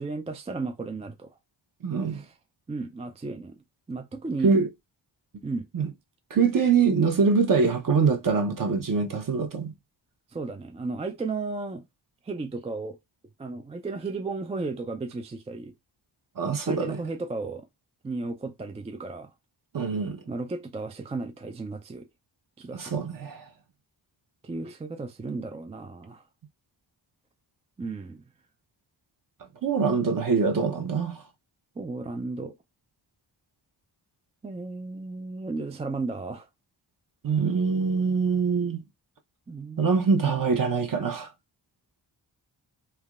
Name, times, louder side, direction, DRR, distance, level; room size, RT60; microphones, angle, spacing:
voice 1, 0.0-1.3 2.1-2.3 2.7-3.6 3.9-4.5 5.4-5.7 10.3-11.9 12.2-13.0 13.4-15.7 16.7-17.6 18.0-19.3 20.3-22.1 22.6-23.0 24.4-26.2 27.8-28.2 31.8-32.5 34.4-36.5 39.5-40.0, right 3 dB, 15° right, 0.3 m, -34 dB
voice 2, 1.8-2.2 4.4-4.7 5.7-5.9 6.3-9.7 16.4-17.0 19.7-20.2 22.7-23.4 29.6-31.2 37.2-38.8 39.8-41.3, right 5 dB, 45° right, 0.8 m, -24 dB
3.3 x 2.2 x 2.4 m
cardioid pair, 55°, 47 cm